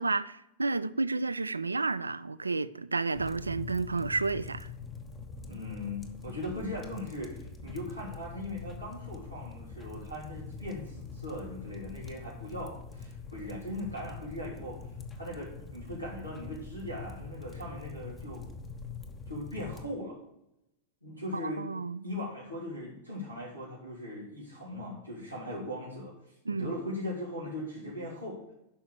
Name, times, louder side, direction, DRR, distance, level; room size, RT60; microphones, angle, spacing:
voice 1, 0.0-4.7 21.3-22.1 26.5-26.7, right 3 dB, 80° right, 0.4 m, -31 dB
sound 1, 3.1-19.8, left 4 dB, 20° left, 1.2 m, -44 dB
voice 2, 5.4-14.8 15.2-18.5 19.3-20.2 21.0-21.6 22.0-26.1 26.5-28.4, left 1 dB, 85° left, 3.5 m, -39 dB
11.5 x 4.8 x 6.5 m
figure-of-eight pair, 90°, 0 cm